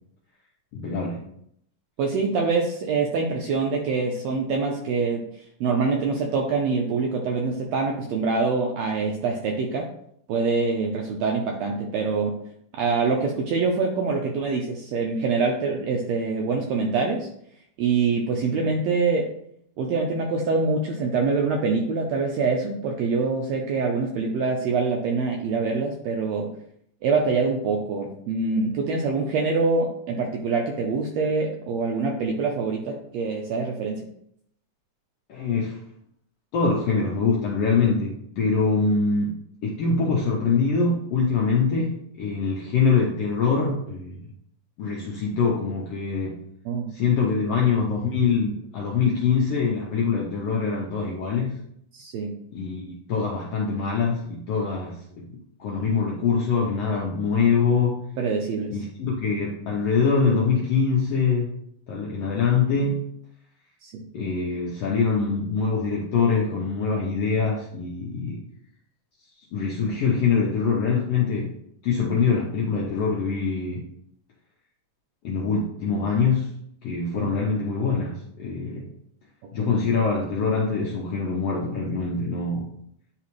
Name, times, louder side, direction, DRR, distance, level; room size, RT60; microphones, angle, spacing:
voice 1, 0.7-1.2 18.5-18.7 35.3-35.8 36.5-44.2 44.8-46.4 46.9-51.6 52.5-58.0 58.7-61.5 61.9-63.1 64.1-68.4 69.5-71.5 71.8-73.8 75.2-76.5 76.8-78.9 79.5-82.7, left 5 dB, 75° left, -2 dB, 1.4 m, -24 dB
voice 2, 2.0-5.2 5.6-9.9 10.3-12.3 12.7-17.3 17.8-19.3 19.8-26.5 27.0-34.0 46.6-46.9 51.9-52.3 58.2-58.7 63.8-64.0 77.1-77.3 79.6-79.7, right 4 dB, 80° right, 1 dB, 1.5 m, -25 dB
9.6 x 3.3 x 3.1 m, 0.71 s
omnidirectional pair, 3.7 m